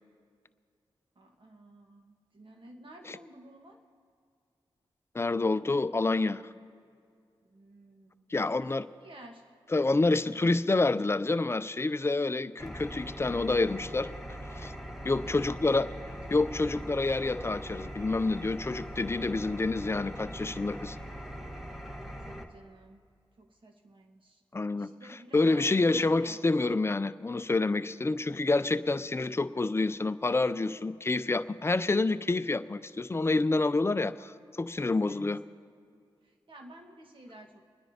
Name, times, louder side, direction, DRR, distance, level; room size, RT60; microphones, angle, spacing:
voice 1, 1.1-3.8 7.4-8.7 9.0-9.4 15.1-16.4 22.1-23.0 23.4-24.4 24.8-26.4 28.2-28.6 34.9-35.2 36.2-37.6, right 1 dB, 55° right, 2 dB, 1.5 m, -53 dB
voice 2, 5.1-6.4 8.3-8.8 9.7-14.1 14.5-14.7 15.0-15.9 16.3-21.0 24.5-24.9 25.3-35.4, left 3 dB, 25° left, 13 dB, 0.5 m, -28 dB
Engine, 12.6-22.4, equal, 5° right, 1.5 m, -41 dB
29.5 x 10.0 x 2.9 m, 2.2 s
cardioid pair, 45°, 10 cm